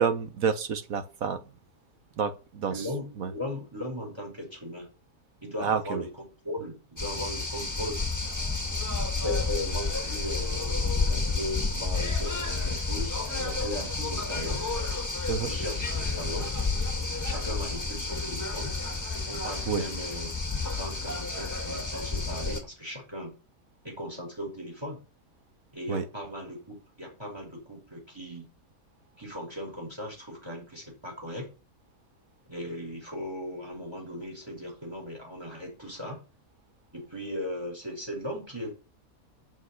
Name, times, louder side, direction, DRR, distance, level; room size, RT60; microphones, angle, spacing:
voice 1, 0.0-1.4 2.2-2.9 3.2-3.3 5.6-6.0 15.3-15.5 19.7-19.8 25.9-26.0, right 6 dB, 70° right, 1.5 m, -29 dB
voice 2, 2.7-4.9 5.4-6.1 6.4-8.0 9.2-14.6 15.4-16.5 17.2-18.7 19.3-20.3 20.7-23.3 23.8-25.0 25.7-28.5 29.2-31.5 32.5-36.2 36.9-38.7, left 1 dB, 15° right, 5.8 m, -37 dB
sound 1, 7.0-22.6, left 3 dB, 10° left, 1.8 m, -30 dB
8.6 x 6.9 x 8.1 m
omnidirectional pair, 1.5 m